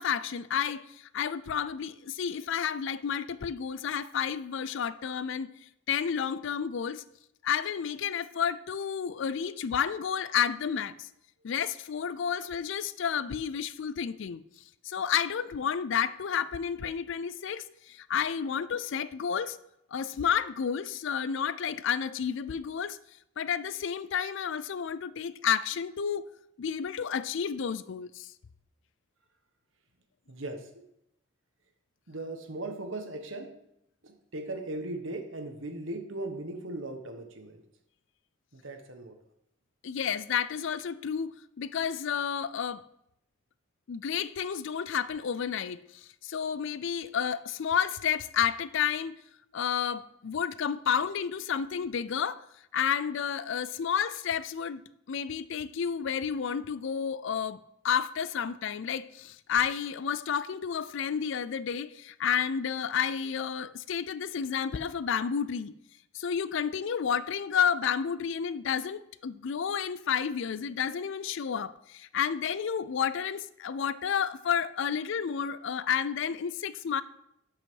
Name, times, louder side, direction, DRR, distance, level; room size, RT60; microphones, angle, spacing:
voice 1, 0.0-5.5 5.9-7.0 7.4-11.1 11.4-14.4 14.8-19.6 19.9-23.0 23.4-26.3 26.6-28.3 39.8-42.8 43.9-45.9 46.2-49.2 49.5-52.4 52.7-54.8 55.1-57.6 57.8-65.7 66.1-77.0, left 7 dB, 60° left, 0.4 m, -31 dB
voice 2, 30.3-30.8 32.1-33.6 34.0-37.6 38.5-39.2, right 2 dB, 65° right, 1.2 m, -38 dB
11.0 x 5.5 x 4.6 m
head